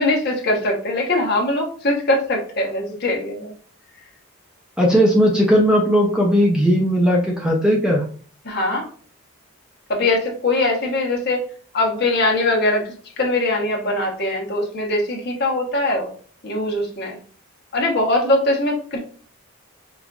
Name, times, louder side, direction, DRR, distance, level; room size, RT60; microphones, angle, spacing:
voice 1, 0.0-3.5 8.4-8.9 9.9-11.5 11.7-16.1 16.4-17.2 17.7-19.0, left 2 dB, 50° left, 0 dB, 1.0 m, -21 dB
voice 2, 4.8-8.0, equal, 5° right, -2 dB, 0.5 m, -17 dB
5.2 x 2.5 x 2.3 m, 0.43 s
head